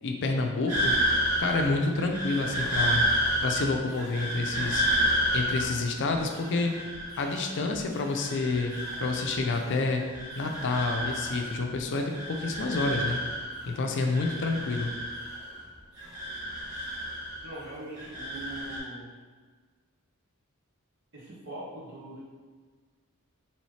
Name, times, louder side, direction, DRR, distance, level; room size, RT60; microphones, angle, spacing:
voice 1, 0.0-1.0 1.4-3.1 3.4-4.9 5.3-6.8 7.2-10.0 10.4-13.2 13.7-15.0, left 3 dB, 55° left, 3 dB, 0.4 m, -29 dB
sound 1, 0.7-7.7 8.0-9.7 10.0-11.7 12.0-13.7 14.0-15.6 16.0-17.6 18.0-18.8, equal, 80° right, 1.4 m, -30 dB
voice 2, 17.4-19.1 21.1-22.2, right 1 dB, 55° right, -8 dB, 1.5 m, -41 dB
4.1 x 3.1 x 3.1 m, 1.5 s
head